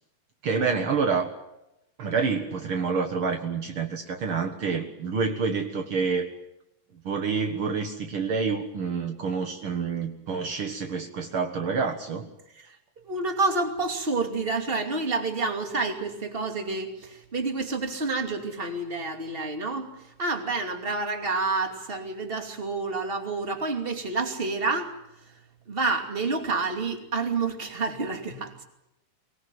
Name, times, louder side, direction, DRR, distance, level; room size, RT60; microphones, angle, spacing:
voice 1, 0.4-1.3 2.0-6.3 7.0-12.3, right 5 dB, 85° right, 4 dB, 1.1 m, -28 dB
voice 2, 13.0-24.9 25.7-28.6, right 3 dB, 20° right, 4 dB, 1.8 m, -29 dB
24.0 x 19.0 x 9.1 m, 0.88 s
omnidirectional pair, 4.8 m